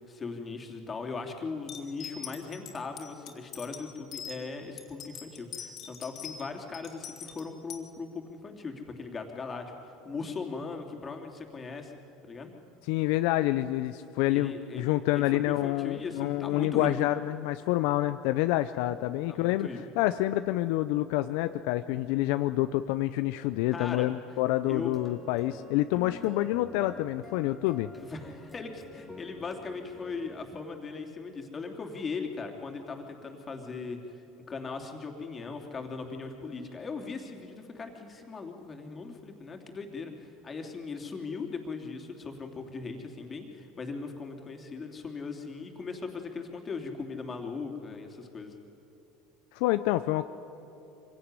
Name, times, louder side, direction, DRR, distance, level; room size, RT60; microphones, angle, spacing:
voice 1, 0.0-11.9 12.2-12.5 14.3-14.8 15.1-16.9 19.3-19.8 23.7-24.1 24.7-24.9 28.0-48.5, left 4 dB, 30° left, 3 dB, 3.1 m, -39 dB
sound 1, 1.7-4.4 4.8-6.4 6.7-7.8, left 7 dB, 50° left, 2.8 m, -42 dB
voice 2, 12.9-19.7 20.0-27.9 49.5-50.3, left 16 dB, 75° left, 11 dB, 0.5 m, -27 dB
sound 2, 24.8-30.6, left 1 dB, ahead, 2.6 m, -48 dB
24.0 x 17.0 x 9.8 m, 3.0 s
supercardioid pair, 95°, 0 cm